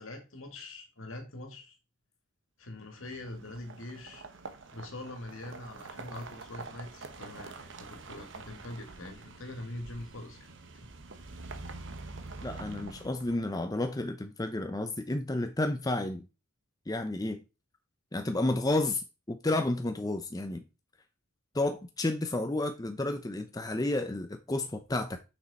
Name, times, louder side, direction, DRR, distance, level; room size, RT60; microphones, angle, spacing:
voice 1, 0.0-1.7 2.6-4.2 4.7-10.4, left 1 dB, 70° left, 2.1 m, -43 dB
sound 1, 2.9-13.8, right 3 dB, 55° right, 1.0 m, -46 dB
voice 2, 12.4-16.3 16.9-17.4 18.1-20.6 21.5-25.2, left 2 dB, 15° left, 0.5 m, -31 dB
6.2 x 6.1 x 4.2 m
head